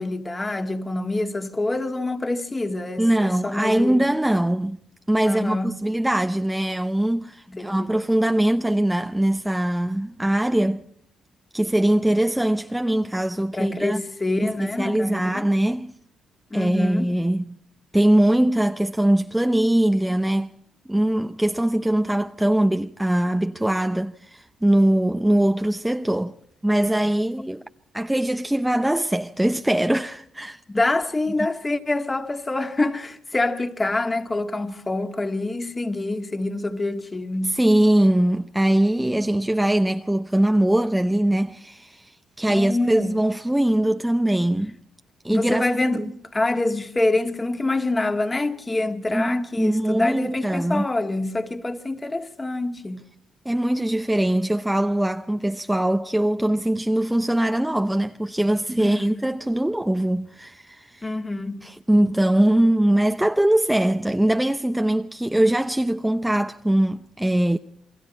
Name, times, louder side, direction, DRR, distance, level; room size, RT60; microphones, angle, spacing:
voice 1, 0.0-4.1 5.3-5.8 7.5-8.0 13.5-15.5 16.5-17.2 30.7-37.6 42.5-43.2 45.3-53.0 58.8-59.3 61.0-61.7, left 2 dB, 20° left, 2.0 m, -26 dB
voice 2, 3.0-4.8 5.1-10.8 11.5-14.0 14.6-15.9 16.5-17.6 17.9-20.5 20.9-26.4 26.6-27.6 27.9-30.6 37.4-44.8 45.2-46.0 49.1-50.9 53.4-61.1 61.6-67.6, right 1 dB, 5° right, 0.7 m, -22 dB
29.0 x 22.0 x 4.2 m
cardioid pair, 90°, 0 cm